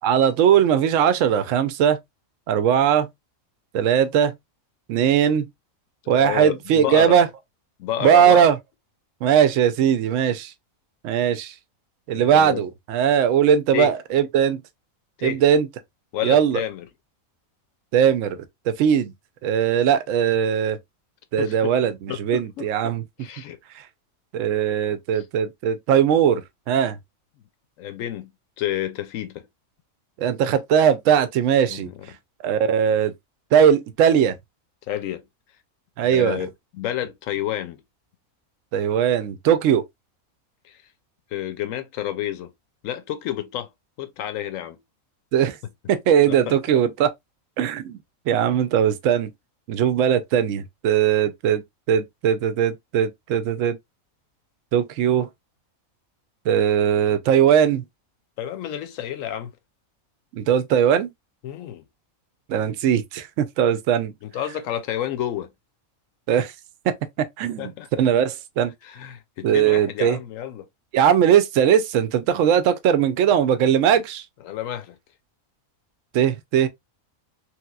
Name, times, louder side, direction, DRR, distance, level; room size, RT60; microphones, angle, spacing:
voice 1, 0.0-2.0 2.5-3.1 3.7-4.3 4.9-5.5 6.1-7.3 8.0-8.6 9.2-10.5 11.0-11.5 12.1-14.6 15.2-15.7 16.2-16.6 17.9-18.4 18.7-19.1 19.4-20.8 21.3-23.0 23.8-23.9 24.3-26.4 26.7-27.0 30.2-31.9 32.4-33.1 33.5-34.4 36.0-36.4 38.7-39.8 45.3-45.6 45.9-47.1 47.6-48.0 48.3-49.3 49.7-51.6 51.9-53.8 54.7-55.3 56.5-57.8 60.3-61.1 62.5-64.1 66.3-66.5 66.9-67.0 67.4-67.7 68.0-68.7 69.4-70.2 70.9-74.2 76.1-76.7, right 8 dB, 70° right, 0.9 m, -19 dB
voice 2, 6.0-7.2 7.8-8.5 12.1-12.6 13.7-13.9 15.2-15.4 16.1-16.9 21.4-21.7 22.1-23.6 25.1-25.3 27.4-27.5 27.8-28.3 28.6-29.5 31.7-32.1 34.9-35.2 36.0-37.8 40.6-40.8 41.3-42.5 42.8-43.7 44.0-44.8 46.3-46.6 58.4-59.5 61.4-61.8 64.2-65.5 67.6-67.9 68.8-70.7 74.4-75.0, left 11 dB, 70° left, 1.0 m, -30 dB
3.2 x 2.9 x 2.2 m
omnidirectional pair, 1.5 m